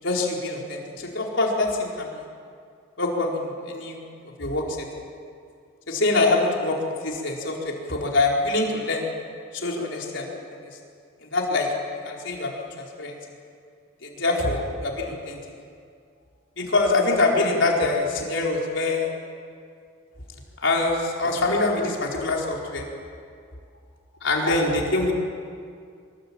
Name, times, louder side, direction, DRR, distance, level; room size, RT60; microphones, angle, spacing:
voice 1, 0.0-2.2 3.0-4.0 4.4-5.0 5.9-6.8 7.0-9.0 9.5-10.7 11.2-11.7 12.0-13.2 14.0-15.4 16.6-19.1 20.6-22.9 24.2-25.1, left 2 dB, 60° left, -1 dB, 4.5 m, -24 dB
24.5 x 21.5 x 8.7 m, 2.3 s
head